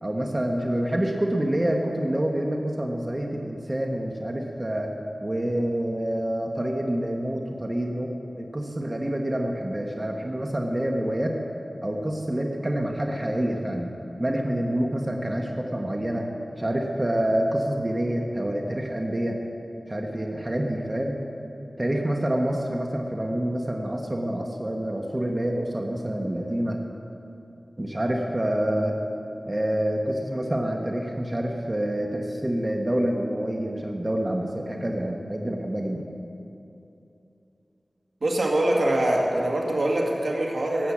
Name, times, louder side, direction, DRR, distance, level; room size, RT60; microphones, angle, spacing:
voice 1, 0.0-4.9 5.2-11.4 11.8-13.9 14.2-16.3 16.5-19.4 19.9-21.1 21.8-26.8 27.8-29.0 29.4-36.1, right 1 dB, 30° right, 1 dB, 1.4 m, -27 dB
voice 2, 38.2-40.9, right 1 dB, 70° right, -1 dB, 2.1 m, -23 dB
18.0 x 8.0 x 7.4 m, 2.7 s
wide cardioid pair, 60°, 0 cm